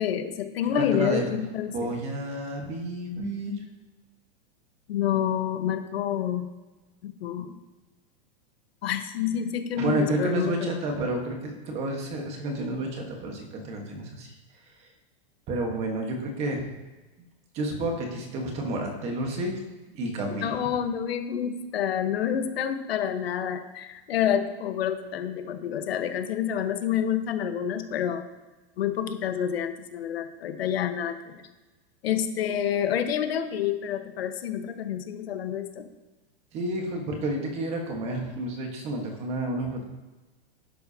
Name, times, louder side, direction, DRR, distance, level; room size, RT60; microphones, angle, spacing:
voice 1, 0.0-1.9 4.9-6.4 7.0-7.5 8.8-10.8 20.4-28.2 28.8-31.4 32.0-35.9, left 9 dB, 85° left, 7 dB, 1.3 m, -28 dB
voice 2, 0.7-1.2 1.7-3.6 9.7-14.3 15.5-16.7 17.5-19.5 19.9-20.6 36.5-39.8, right 1 dB, 20° right, 2 dB, 1.4 m, -30 dB
11.5 x 10.5 x 2.9 m, 1.2 s
supercardioid pair, 175°, 29 cm